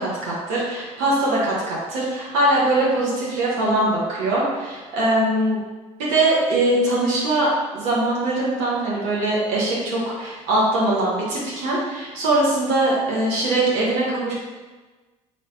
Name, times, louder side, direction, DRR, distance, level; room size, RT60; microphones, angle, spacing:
voice 1, 0.0-5.6 6.0-14.3, right 1 dB, 90° right, -6 dB, 1.0 m, -22 dB
3.1 x 2.7 x 4.1 m, 1.3 s
supercardioid pair, 85°, 15 cm